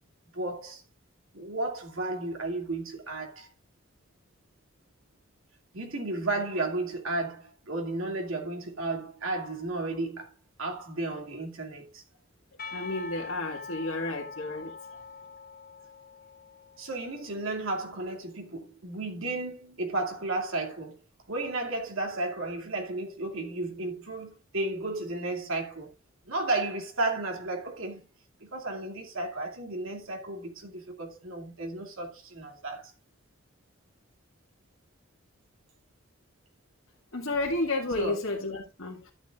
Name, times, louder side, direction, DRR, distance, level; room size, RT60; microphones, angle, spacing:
voice 1, 0.3-0.8 1.3-3.5 5.7-10.3 10.6-12.0 16.8-21.0 21.3-25.9 26.3-28.1 28.4-32.9 38.0-38.2, right 2 dB, 75° right, 2.5 m, -33 dB
Percussion, 12.6-17.4, left 4 dB, 40° left, 3.8 m, -43 dB
voice 2, 12.7-14.7 37.1-39.1, left 2 dB, 75° left, 2.0 m, -31 dB
13.0 x 9.4 x 2.4 m
head